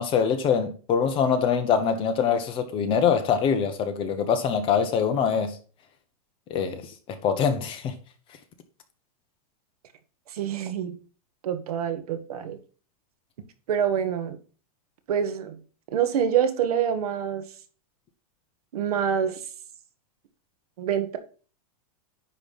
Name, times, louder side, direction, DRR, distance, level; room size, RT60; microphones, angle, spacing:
voice 1, 0.0-5.6 6.5-7.9, left 7 dB, 25° left, 1.2 m, -24 dB
voice 2, 10.3-11.0 11.4-12.6 13.7-14.4 15.1-15.6 15.9-17.5 18.7-19.4 20.8-21.2, right 8 dB, 80° right, 1.4 m, -26 dB
9.9 x 3.4 x 5.5 m
supercardioid pair, 150°, 19 cm